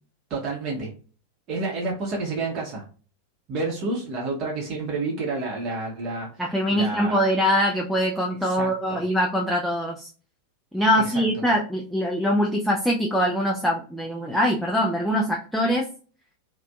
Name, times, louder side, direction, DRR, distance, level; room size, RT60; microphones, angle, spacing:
voice 1, 0.3-0.9 1.5-2.8 3.5-6.4 6.7-7.2 8.4-9.0 11.0-11.6, right 3 dB, 35° right, -3 dB, 0.7 m, -30 dB
voice 2, 6.4-10.1 10.7-15.9, equal, ahead, 0 dB, 0.3 m, -23 dB
2.5 x 2.2 x 2.2 m, 0.39 s
figure-of-eight pair, 90°, 0 cm